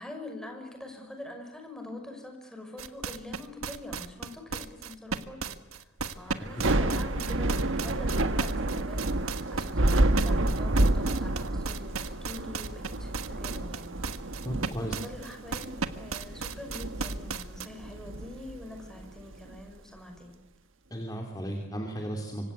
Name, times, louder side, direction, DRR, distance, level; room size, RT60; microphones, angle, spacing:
voice 1, 0.0-20.3, left 1 dB, 5° left, 3 dB, 5.9 m, -44 dB
sound 1, 2.8-17.7, right 5 dB, 85° right, 1.5 m, -35 dB
Thunder / Rain, 6.4-19.6, right 1 dB, 65° right, 1.4 m, -29 dB
voice 2, 14.4-14.9 20.9-22.5, equal, 20° left, 2 dB, 3.2 m, -35 dB
25.5 x 25.5 x 8.3 m, 0.93 s
head